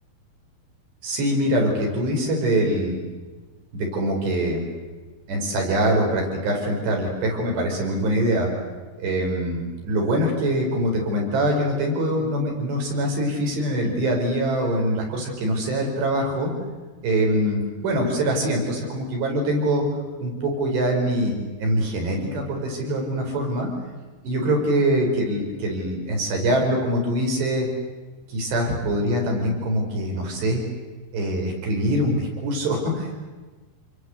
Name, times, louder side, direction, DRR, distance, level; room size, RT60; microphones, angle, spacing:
voice 1, 1.0-3.0 3.7-4.6 5.3-8.5 9.0-16.5 17.0-19.8 20.2-23.7 24.2-27.7 28.3-30.6 31.1-33.1, right 1 dB, 80° right, 1 dB, 7.3 m, -23 dB
28.0 x 22.0 x 8.1 m, 1.3 s
omnidirectional pair, 4.8 m